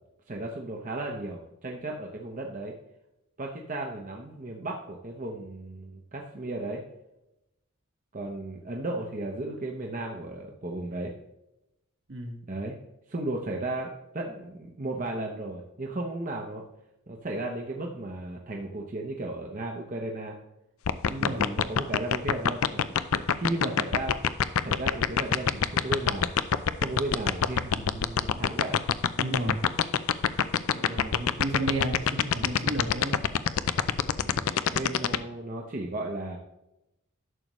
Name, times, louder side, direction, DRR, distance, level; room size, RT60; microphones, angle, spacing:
voice 1, 0.3-2.8 3.4-6.8 8.1-11.1 12.5-12.8 13.1-16.6 17.1-20.4 21.2-24.2 24.6-26.3 26.6-28.8 34.2-36.4, right 2 dB, 40° right, 0 dB, 0.8 m, -35 dB
voice 2, 12.1-12.4 21.0-21.5 29.2-29.6 30.7-33.2, right 1 dB, 65° right, 2 dB, 1.7 m, -33 dB
sound 1, 20.8-35.2, left 8 dB, 85° left, 0.5 m, -23 dB
11.0 x 6.6 x 3.1 m, 0.90 s
head